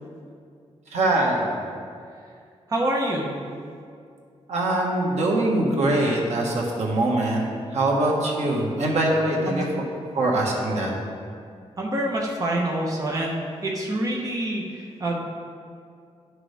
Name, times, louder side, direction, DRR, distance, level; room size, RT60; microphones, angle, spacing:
voice 1, 0.9-1.6 4.5-7.5 7.7-9.7 10.1-10.9, right 1 dB, 90° right, -2 dB, 1.4 m, -23 dB
voice 2, 2.7-3.3 9.5-9.6 11.8-15.2, right 1 dB, 30° right, -2 dB, 0.9 m, -26 dB
11.5 x 6.2 x 3.5 m, 2.3 s
wide cardioid pair, 165°, 11 cm